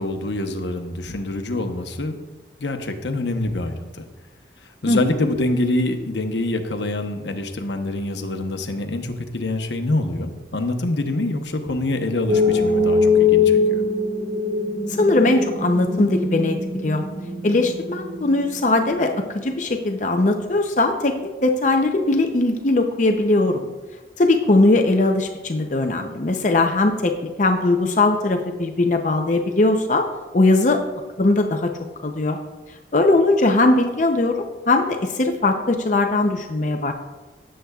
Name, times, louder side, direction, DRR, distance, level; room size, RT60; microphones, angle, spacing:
voice 1, 0.0-2.2 2.6-4.0 4.8-13.8, left 2 dB, 80° left, 6 dB, 0.9 m, -25 dB
sound 1, 12.3-19.2, left 4 dB, 40° right, 2.0 m, -22 dB
voice 2, 14.9-16.6 16.8-17.0 17.4-21.1 21.4-23.6 24.2-30.0 30.3-30.8 31.2-31.7 32.0-32.4 32.9-36.9, left 2 dB, 45° left, 4 dB, 0.6 m, -19 dB
16.5 x 7.7 x 2.4 m, 1.2 s
head